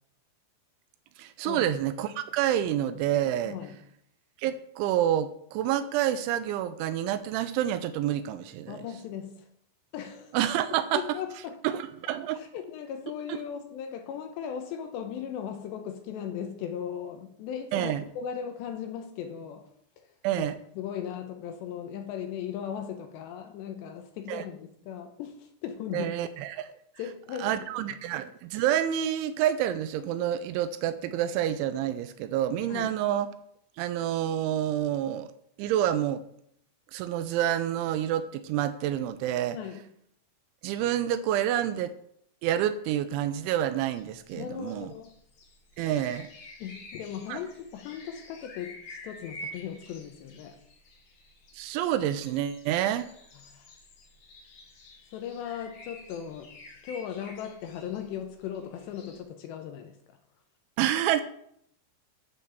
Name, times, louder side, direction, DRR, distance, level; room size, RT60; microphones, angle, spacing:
voice 1, 1.2-3.6 4.4-8.8 10.3-11.2 11.6-12.4 13.3-13.4 17.7-18.0 20.2-20.6 24.3-24.4 25.9-26.7 27.4-33.3 33.8-35.3 35.6-36.2 36.9-39.6 40.6-41.9 42.4-44.9 45.8-46.3 47.3-47.4 51.5-53.1 60.8-61.2, right 11 dB, 80° right, 12 dB, 2.9 m, -28 dB
voice 2, 3.5-3.8 8.7-9.5 9.9-10.3 10.9-11.6 12.3-19.7 20.0-20.1 20.4-20.5 20.8-26.1 27.0-27.6 32.7-32.9 39.5-39.9 44.3-45.2 46.6-50.6 53.5-53.7 55.1-56.6 56.8-60.0, left 8 dB, 80° left, 6 dB, 2.7 m, -37 dB
sound 1, 43.9-59.2, left 1 dB, 60° left, 2.1 m, -49 dB
10.0 x 5.3 x 7.1 m, 0.70 s
omnidirectional pair, 5.6 m